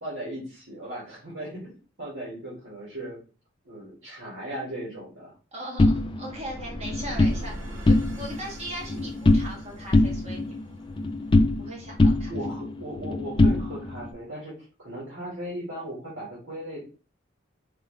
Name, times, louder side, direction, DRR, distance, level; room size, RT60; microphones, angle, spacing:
voice 1, 0.0-3.2 3.6-5.3 12.3-16.8, right 1 dB, 90° right, -6 dB, 2.1 m, -37 dB
voice 2, 5.5-7.5 7.8-10.6 11.6-12.3, equal, 30° right, -3 dB, 1.8 m, -39 dB
sound 1, 5.8-7.4 7.8-8.4 8.7-9.6 9.9-11.7 12.0-14.1, left 2 dB, 25° left, 0.4 m, -22 dB
sound 2, 6.2-11.2, right 1 dB, 65° right, 0.9 m, -41 dB
4.7 x 3.2 x 3.2 m, 0.36 s
head